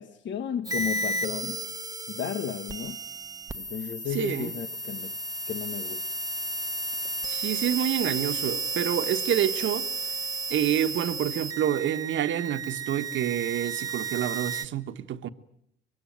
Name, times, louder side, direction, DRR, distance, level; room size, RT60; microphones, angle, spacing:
voice 1, 0.0-1.6 2.1-3.0 3.5-5.1 5.5-6.2, left 8 dB, 65° left, 1.2 m, -34 dB
sound 1, 0.6-14.6, right 3 dB, 20° right, 1.1 m, -33 dB
voice 2, 4.1-4.5 7.3-9.9 10.5-15.3, right 10 dB, 75° right, 1.3 m, -28 dB
24.5 x 23.5 x 9.2 m
cardioid pair, 90°, 20 cm